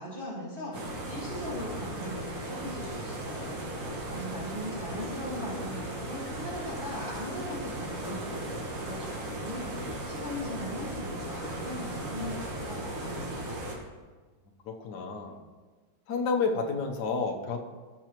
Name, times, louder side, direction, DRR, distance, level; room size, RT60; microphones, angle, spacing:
voice 1, 0.0-13.4, equal, 25° right, -8 dB, 1.9 m, -40 dB
sound 1, 0.7-13.8, right 1 dB, 80° right, 2.5 m, -37 dB
voice 2, 14.8-15.4 16.1-17.6, left 4 dB, 60° left, 2 dB, 1.4 m, -29 dB
17.0 x 6.1 x 3.0 m, 1.4 s
omnidirectional pair, 2.2 m